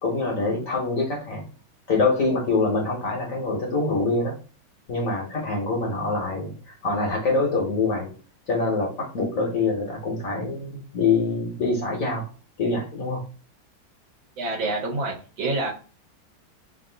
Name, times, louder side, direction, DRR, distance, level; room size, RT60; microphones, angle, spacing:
voice 1, 0.0-1.4 1.9-4.4 4.9-8.1 8.5-12.3 12.6-13.2, left 3 dB, 55° left, 0 dB, 1.0 m, -25 dB
voice 2, 14.4-15.7, right 2 dB, 75° right, -2 dB, 2.0 m, -27 dB
3.8 x 2.5 x 3.8 m, 0.37 s
omnidirectional pair, 2.1 m